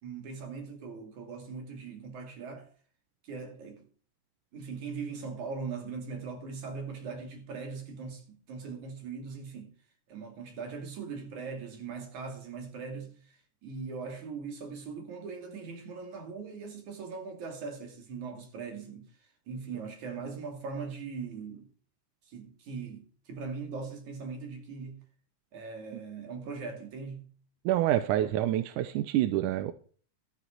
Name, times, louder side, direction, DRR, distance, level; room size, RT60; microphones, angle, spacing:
voice 1, 0.0-2.7 3.2-3.9 4.5-9.7 10.1-21.7 22.3-25.0 25.5-27.3 28.2-28.3, right 5 dB, 70° right, 3.9 m, -40 dB
voice 2, 27.7-29.7, right 13 dB, 90° right, 2.2 m, -27 dB
13.0 x 9.1 x 4.5 m
omnidirectional pair, 3.5 m